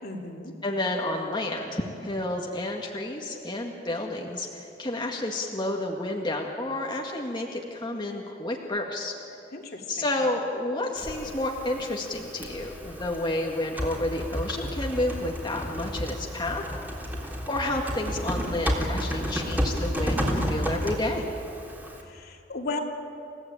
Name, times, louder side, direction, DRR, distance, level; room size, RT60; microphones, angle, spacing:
voice 1, 0.0-0.5 9.5-9.8 22.1-22.8, left 3 dB, 55° left, 1 dB, 2.8 m, -35 dB
voice 2, 0.6-9.1 9.9-16.6 17.5-21.3, left 1 dB, 25° left, -1 dB, 1.9 m, -30 dB
Typing, 11.0-22.0, equal, 10° right, 3.4 m, -32 dB
29.0 x 16.0 x 8.9 m, 2.6 s
head